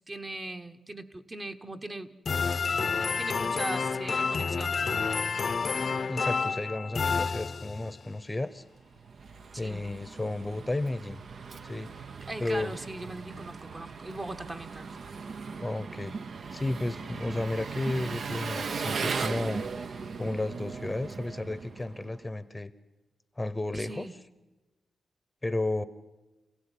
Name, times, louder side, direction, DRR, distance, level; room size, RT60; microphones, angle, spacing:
voice 1, 0.0-2.2 3.2-5.2 9.5-9.9 12.3-15.0 23.7-24.1, right 2 dB, 25° right, 7 dB, 1.1 m, -40 dB
sound 1, 2.3-8.0, left 5 dB, 55° left, 0.8 m, -29 dB
voice 2, 6.1-8.6 9.6-11.2 11.6-11.9 12.4-12.7 15.6-16.2 16.5-19.6 20.2-22.7 23.4-24.1 25.4-25.8, left 2 dB, 15° left, 14 dB, 0.9 m, -33 dB
Engine, 8.7-22.3, right 5 dB, 65° right, 0.9 m, -38 dB
27.5 x 16.5 x 10.0 m, 1.1 s
wide cardioid pair, 115°, 0 cm